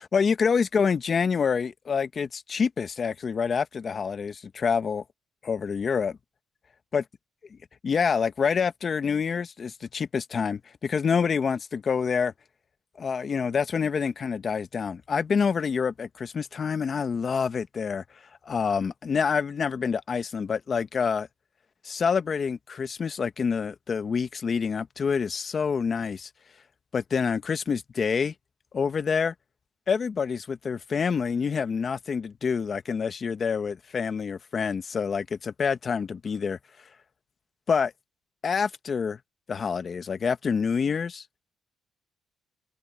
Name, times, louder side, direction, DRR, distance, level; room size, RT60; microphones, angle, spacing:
voice 1, 0.1-5.0 5.4-6.2 6.9-7.0 7.8-12.3 13.0-18.0 18.4-21.3 21.8-26.3 26.9-28.3 28.7-29.3 29.9-36.6 37.7-37.9 38.4-39.2 39.5-41.2, left 6 dB, 45° left, 1.3 m, -27 dB
cardioid pair, 90°, 0 cm